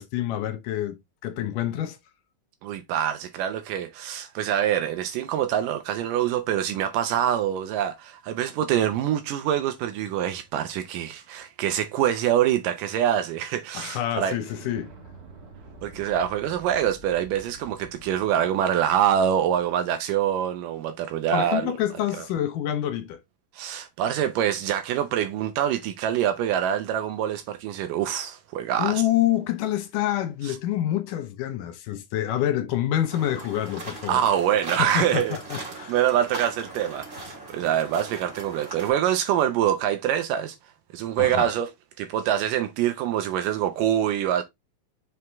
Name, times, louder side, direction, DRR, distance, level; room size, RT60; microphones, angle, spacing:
voice 1, 0.0-2.0 13.7-14.9 21.3-23.2 28.8-34.2 34.8-35.9 41.2-41.5, left 12 dB, 75° left, 2.4 m, -27 dB
voice 2, 2.6-14.4 15.8-21.7 22.2-22.3 23.6-29.0 30.4-30.6 34.1-35.4 35.9-40.6 40.9-41.7 42.0-44.4, right 10 dB, 80° right, 2.3 m, -25 dB
Explosion, 14.4-19.9, right 2 dB, 40° right, 1.3 m, -48 dB
sound 1, 33.1-38.9, right 2 dB, 20° right, 2.0 m, -39 dB
5.7 x 4.9 x 3.4 m
omnidirectional pair, 3.9 m